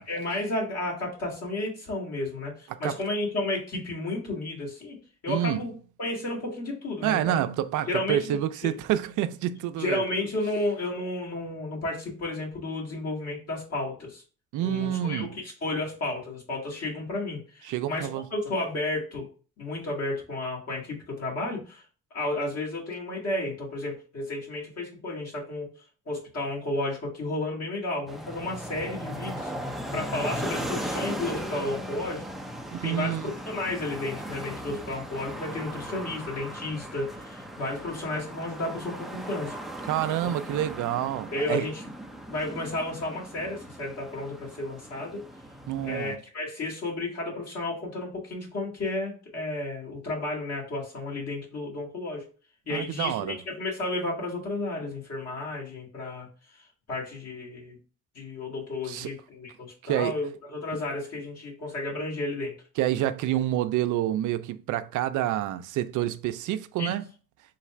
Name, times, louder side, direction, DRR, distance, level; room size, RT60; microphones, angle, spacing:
voice 1, 0.0-5.0 5.2-5.7 6.0-7.4 7.9-8.8 9.8-14.2 14.6-19.3 19.6-21.8 22.1-25.7 26.1-29.5 29.9-32.2 32.8-33.2 33.5-39.6 41.3-41.8 42.3-45.2 45.8-52.2 52.7-56.3 56.9-57.8 58.2-62.5 66.8-66.9, left 2 dB, 55° left, 1.9 m, -32 dB
voice 2, 5.3-5.6 7.0-10.0 14.5-15.4 17.7-18.2 32.7-33.3 39.9-41.7 45.7-46.2 52.7-53.4 58.9-59.1 59.8-60.2 62.8-67.0, right 12 dB, 80° right, 0.5 m, -28 dB
sound 1, 28.1-46.2, equal, ahead, 0.4 m, -38 dB
3.8 x 2.4 x 4.2 m
cardioid pair, 90°, 30 cm